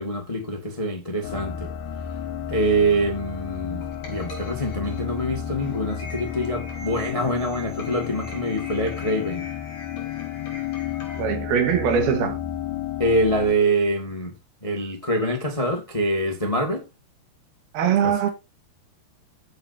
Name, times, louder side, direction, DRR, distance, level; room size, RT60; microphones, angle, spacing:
voice 1, 0.0-1.7 2.5-9.4 13.0-14.3 14.6-16.8, right 1 dB, 30° left, 0.5 m, -25 dB
sound 1, 1.2-13.5, left 9 dB, 75° left, 3.5 m, -32 dB
sound 2, 2.8-11.2, left 2 dB, 50° left, 6.3 m, -43 dB
voice 2, 11.2-12.4 17.7-18.3, right 7 dB, 70° right, 3.4 m, -21 dB
15.0 x 6.9 x 2.7 m
omnidirectional pair, 4.8 m